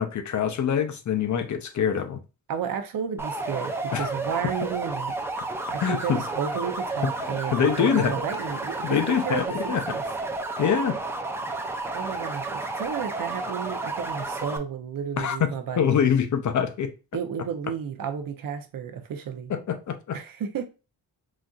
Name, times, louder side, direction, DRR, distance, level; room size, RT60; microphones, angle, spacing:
voice 1, 0.0-2.2 3.9-4.1 5.8-6.2 7.0-7.1 7.5-8.2 8.8-10.0 10.6-11.0 15.2-16.9 19.5-20.2, left 8 dB, 50° left, 0.5 m, -25 dB
voice 2, 2.5-5.1 5.7-10.0 11.9-16.0 17.1-19.5 20.1-20.7, right 7 dB, 60° right, 0.6 m, -32 dB
sound 1, 3.2-14.6, right 3 dB, 5° right, 0.3 m, -31 dB
4.1 x 2.5 x 2.3 m
wide cardioid pair, 125°, 39 cm